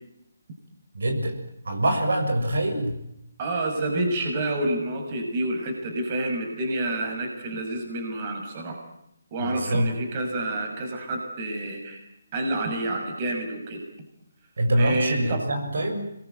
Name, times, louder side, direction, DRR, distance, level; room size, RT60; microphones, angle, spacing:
voice 1, 0.9-1.3 1.6-3.0 9.4-9.9 14.6-16.1, right 1 dB, 70° right, 5 dB, 6.9 m, -24 dB
voice 2, 3.4-8.8 9.3-12.0 12.3-13.8 14.8-15.4, right 2 dB, 35° right, 3 dB, 6.1 m, -28 dB
25.5 x 22.0 x 9.3 m, 0.80 s
figure-of-eight pair, 150°, 0 cm